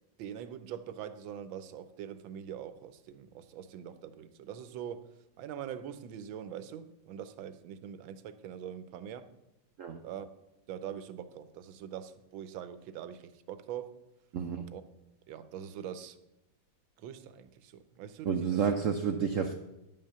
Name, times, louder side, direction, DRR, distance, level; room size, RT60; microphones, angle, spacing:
voice 1, 0.2-9.3 10.0-10.3 10.7-13.9 14.7-14.8 15.3-16.2 17.0-18.6, right 9 dB, 90° right, 1.5 m, -43 dB
voice 2, 14.3-14.6 18.2-19.5, right 7 dB, 75° right, 0.7 m, -30 dB
10.0 x 5.5 x 6.7 m
omnidirectional pair, 2.1 m